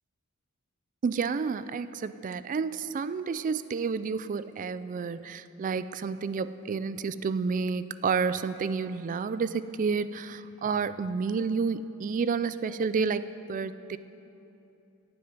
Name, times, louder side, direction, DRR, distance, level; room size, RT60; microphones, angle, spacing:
voice 1, 1.0-14.0, right 5 dB, 35° right, 14 dB, 0.3 m, -30 dB
9.5 x 7.8 x 9.4 m, 2.9 s
head